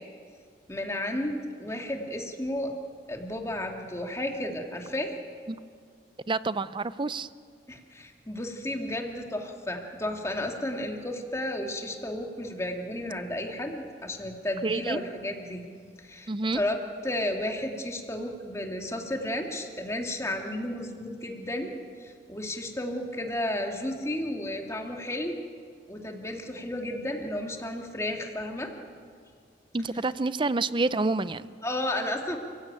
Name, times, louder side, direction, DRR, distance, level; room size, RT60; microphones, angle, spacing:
voice 1, 0.7-2.7 3.1-5.1 7.7-15.6 16.0-21.7 22.0-25.3 25.9-28.7 31.6-32.4, left 1 dB, 15° left, 2 dB, 2.5 m, -33 dB
voice 2, 6.3-7.3 14.6-15.0 16.3-16.6 29.7-31.5, right 3 dB, 30° right, 15 dB, 0.5 m, -28 dB
29.0 x 16.0 x 8.9 m, 2.1 s
head